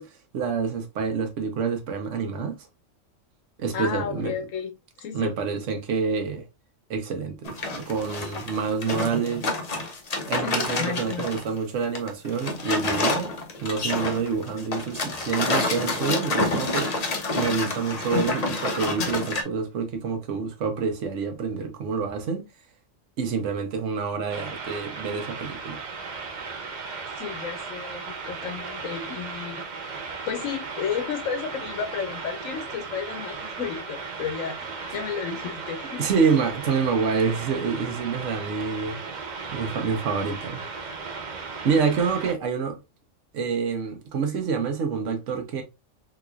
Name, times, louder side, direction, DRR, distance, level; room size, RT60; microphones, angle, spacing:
voice 1, 0.0-2.7 3.6-4.3 5.1-6.5 6.9-9.4 10.2-13.3 13.6-17.1 17.4-22.4 23.2-25.8 36.0-39.0 39.5-40.6 41.6-42.8 43.3-45.6, right 5 dB, 70° right, 1.1 m, -27 dB
voice 2, 3.7-4.7 5.0-5.3 10.4-11.3 27.2-29.6 30.3-34.6 34.9-36.1, left 7 dB, 80° left, 1.2 m, -32 dB
sound 1, 7.4-11.5 11.8-19.4, left 2 dB, 40° left, 0.7 m, -28 dB
sound 2, 24.3-42.3, right 4 dB, 50° right, 0.6 m, -36 dB
3.5 x 3.0 x 2.3 m
omnidirectional pair, 1.4 m